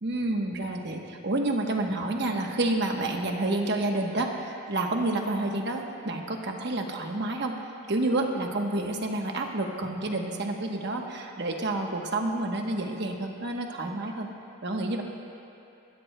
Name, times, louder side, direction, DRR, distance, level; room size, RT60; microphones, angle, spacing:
voice 1, 0.0-7.6 7.9-14.3 14.6-15.0, right 2 dB, 50° right, 2 dB, 1.1 m, -29 dB
24.5 x 12.5 x 2.2 m, 2.7 s
head